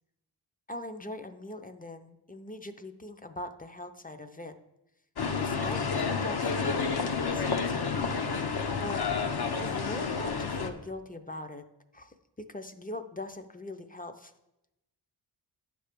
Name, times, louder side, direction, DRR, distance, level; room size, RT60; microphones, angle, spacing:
voice 1, 0.7-4.5 5.4-8.1 8.8-9.0 9.6-11.6 11.9-12.1 12.5-14.3, left 2 dB, 20° left, 8 dB, 0.6 m, -41 dB
sound 1, 5.2-10.7, left 5 dB, 55° left, 0.8 m, -30 dB
9.8 x 3.4 x 6.7 m, 0.92 s
cardioid pair, 50°, 48 cm